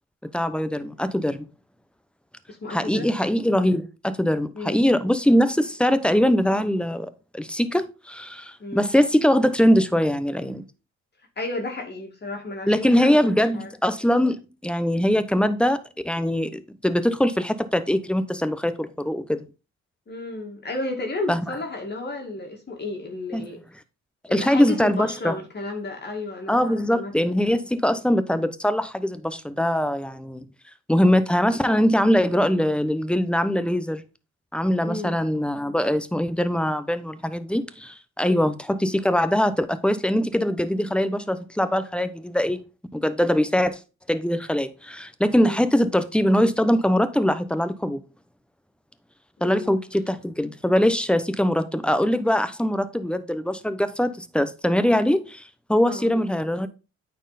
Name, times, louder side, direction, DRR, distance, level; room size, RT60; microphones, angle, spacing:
voice 1, 0.3-1.5 2.7-10.6 12.7-19.4 21.3-21.4 23.3-23.5 24.3-25.4 26.5-30.5 30.9-34.0 34.5-42.6 42.9-43.8 44.1-48.0 49.4-56.7, equal, 5° left, 0.8 m, -22 dB
voice 2, 2.5-3.1 4.5-4.8 8.6-8.9 11.4-13.7 20.1-23.6 24.3-27.4 34.8-35.2 38.3-38.5 45.4-45.6 49.4-49.8 55.9-56.3, left 2 dB, 35° left, 2.1 m, -33 dB
8.9 x 4.4 x 4.1 m
cardioid pair, 90°, 30 cm